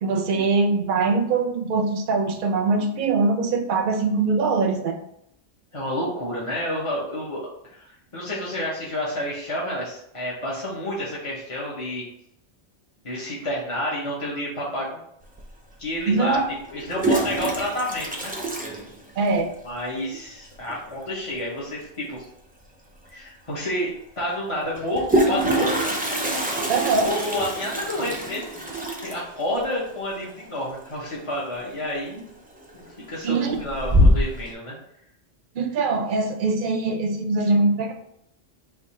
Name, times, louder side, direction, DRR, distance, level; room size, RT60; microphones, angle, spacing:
voice 1, 0.0-5.0 16.1-16.5 19.2-19.5 26.7-27.1 33.2-33.6 35.5-37.9, right 3 dB, 55° right, 4 dB, 0.7 m, -22 dB
voice 2, 5.7-12.0 13.0-15.0 15.8-16.4 16.7-18.3 19.6-22.3 23.1-25.9 27.0-32.2 32.7-34.7, left 1 dB, 30° left, -6 dB, 1.0 m, -29 dB
Toilet flush, 15.4-15.5 16.7-19.5 19.8-19.9 20.1-20.2 20.5-20.9 22.6-22.7 23.1-23.2 24.7-31.4 31.7-32.1 32.6-33.1 33.5-34.5, right 1 dB, 15° right, 0.3 m, -25 dB
3.6 x 2.7 x 4.2 m, 0.73 s
omnidirectional pair, 1.2 m